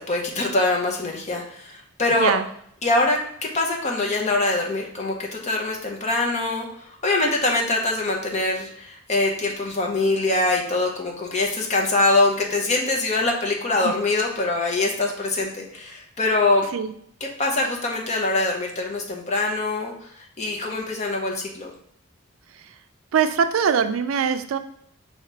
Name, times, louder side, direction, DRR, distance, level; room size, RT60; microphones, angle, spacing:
voice 1, 0.1-2.3 2.8-3.2 3.5-16.7 17.4-21.7, left 2 dB, 35° left, 1 dB, 0.7 m, -23 dB
voice 2, 2.1-2.4 13.8-13.9 16.7-16.9 23.1-24.6, right 7 dB, 85° right, 10 dB, 0.4 m, -22 dB
4.8 x 2.8 x 3.3 m, 0.68 s
head